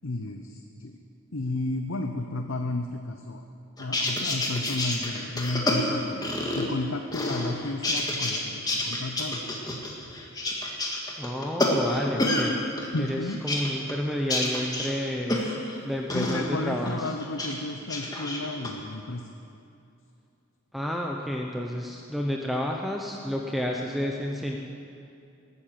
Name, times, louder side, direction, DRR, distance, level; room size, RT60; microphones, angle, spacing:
voice 1, 0.0-1.0 1.3-3.4 3.8-6.3 6.5-9.4 12.9-13.4 16.1-19.3, left 2 dB, 60° left, 5 dB, 0.8 m, -32 dB
sound 1, 3.8-6.8 7.1-8.4 8.7-12.5 12.8-15.8 16.1-16.4 16.9-17.5 17.8-18.7, left 1 dB, 20° left, 1.8 m, -28 dB
voice 2, 11.2-12.6 13.0-15.5 15.8-17.1 20.7-24.6, equal, ahead, 0 dB, 0.8 m, -30 dB
19.5 x 9.7 x 7.5 m, 2.6 s
head